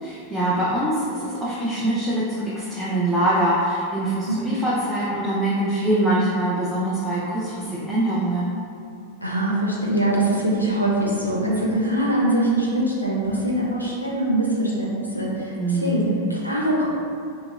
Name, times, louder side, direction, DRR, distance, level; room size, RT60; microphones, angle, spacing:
voice 1, 0.0-8.5 15.6-16.2, right 1 dB, 5° right, -8 dB, 0.5 m, -23 dB
voice 2, 9.2-16.0 16.3-16.9, right 1 dB, 90° left, -5 dB, 0.4 m, -23 dB
2.9 x 2.7 x 2.3 m, 2.5 s
figure-of-eight pair, 90°, 0 cm